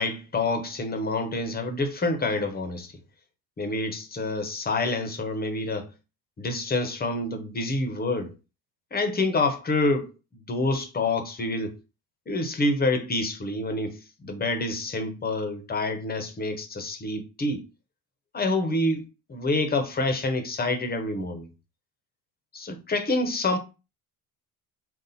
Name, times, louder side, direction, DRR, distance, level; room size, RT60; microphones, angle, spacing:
voice 1, 0.0-2.9 3.6-5.9 6.4-8.3 8.9-10.1 10.5-11.8 12.3-17.7 18.3-21.5 22.5-23.6, left 2 dB, 25° left, 0.8 m, -27 dB
4.0 x 2.4 x 4.1 m
cardioid pair, 115°, 36 cm